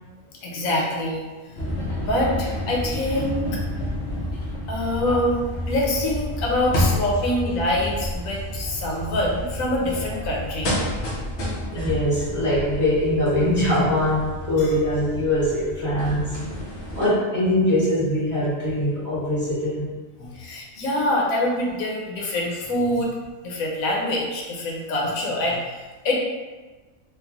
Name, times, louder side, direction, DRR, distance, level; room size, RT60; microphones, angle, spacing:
voice 1, 0.4-3.6 4.7-5.4 5.6-10.7 14.6-14.8 16.0-16.3 20.2-23.1 23.4-26.2, left 1 dB, 85° left, -2 dB, 1.1 m, -25 dB
sound 1, 1.6-17.1, left 1 dB, 60° left, 1.0 m, -30 dB
voice 2, 11.7-16.3 16.9-19.9, left 1 dB, 30° left, -11 dB, 1.1 m, -22 dB
3.2 x 2.4 x 2.3 m, 1.3 s
omnidirectional pair, 1.4 m